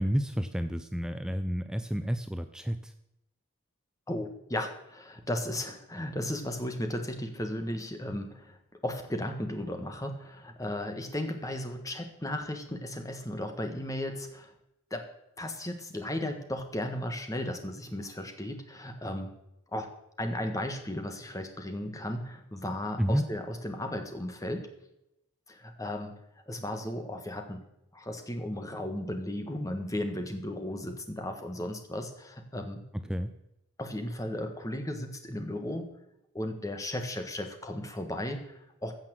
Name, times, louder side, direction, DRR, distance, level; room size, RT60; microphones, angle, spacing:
voice 1, 0.0-2.9 23.0-23.2 33.1-33.3, equal, 5° right, 9 dB, 0.4 m, -30 dB
voice 2, 4.1-14.5 14.9-15.1 15.4-19.3 19.7-19.9 20.2-24.7 25.5-26.1 26.5-27.6 27.9-32.8 33.8-35.9 36.3-39.0, left 1 dB, 15° left, 6 dB, 1.3 m, -35 dB
15.0 x 5.8 x 7.5 m, 0.85 s
head